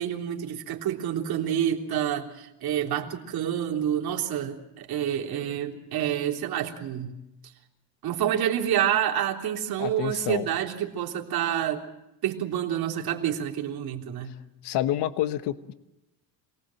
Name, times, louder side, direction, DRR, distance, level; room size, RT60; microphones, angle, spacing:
voice 1, 0.0-7.1 7.4-7.5 8.0-11.8 12.2-14.4, right 10 dB, 55° right, 0 dB, 3.5 m, -28 dB
voice 2, 9.8-10.5 14.3-14.4 14.6-15.7, left 12 dB, 70° left, 11 dB, 1.2 m, -28 dB
27.0 x 19.0 x 7.7 m, 0.93 s
cardioid pair, 130°, 43 cm